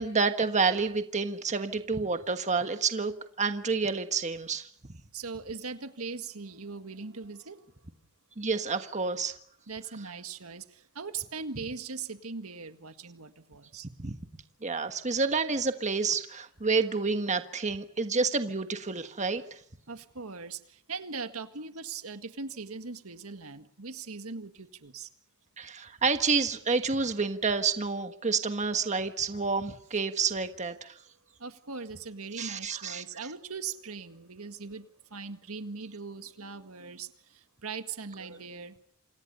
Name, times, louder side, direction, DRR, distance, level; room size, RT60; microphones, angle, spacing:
voice 1, 0.0-4.7 8.4-9.3 14.0-19.4 25.6-30.9 32.4-33.0, right 4 dB, 35° right, 1.4 m, -29 dB
voice 2, 5.1-7.6 9.7-13.9 19.9-25.1 31.4-38.8, right 4 dB, 80° right, 1.8 m, -40 dB
28.0 x 28.0 x 5.6 m
head